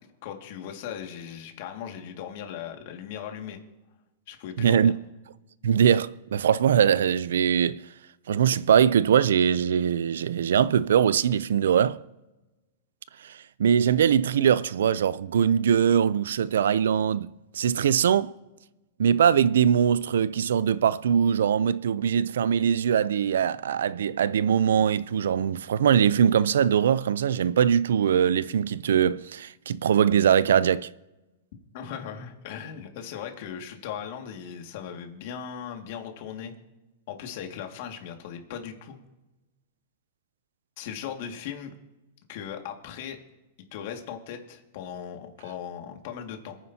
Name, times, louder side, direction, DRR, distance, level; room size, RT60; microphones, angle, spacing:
voice 1, 0.2-3.6 4.3-4.9 31.7-36.5 37.1-39.0 40.8-41.7 42.3-43.2 43.7-46.6, left 8 dB, 55° left, 2.0 m, -38 dB
voice 2, 4.6-4.9 5.6-7.8 8.3-12.0 13.2-18.3 19.0-30.9, right 8 dB, 85° right, 0.4 m, -22 dB
27.0 x 9.5 x 2.8 m
supercardioid pair, 155°, 0 cm